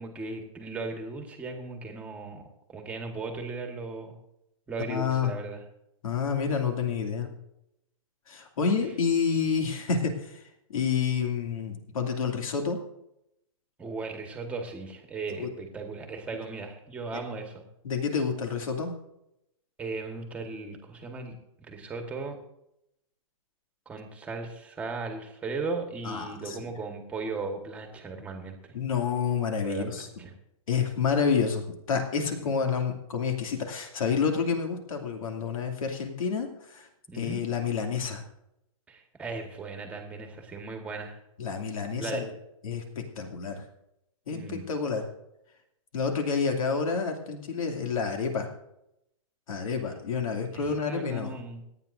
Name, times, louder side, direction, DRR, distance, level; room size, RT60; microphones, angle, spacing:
voice 1, 0.0-2.4 2.7-4.1 4.7-5.6 13.8-17.6 19.8-21.3 21.7-22.4 23.8-28.7 29.6-30.3 37.1-37.4 38.9-41.2 42.0-42.2 44.3-44.6 50.5-51.6, right 3 dB, 5° right, 3 dB, 1.4 m, -37 dB
voice 2, 4.9-5.3 6.0-7.3 8.3-10.4 10.7-12.8 15.4-15.5 17.8-18.9 26.0-26.6 28.7-30.1 30.7-36.9 37.1-38.2 41.4-42.3 42.6-42.8 43.2-43.6 44.3-45.0 45.9-48.5 49.5-51.4, left 6 dB, 75° left, 3 dB, 2.6 m, -29 dB
26.5 x 9.0 x 2.6 m, 0.83 s
hypercardioid pair, 165°, 18 cm